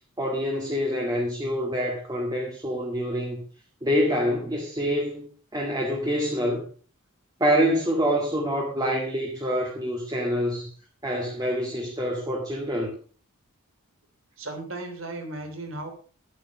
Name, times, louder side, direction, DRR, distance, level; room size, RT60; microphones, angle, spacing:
voice 1, 0.2-3.4 3.8-6.6 7.4-10.7 11.0-12.9, equal, 20° right, -1 dB, 2.1 m, -26 dB
voice 2, 14.4-15.9, right 2 dB, 60° right, 5 dB, 3.2 m, -35 dB
10.5 x 9.3 x 5.2 m, 0.42 s
head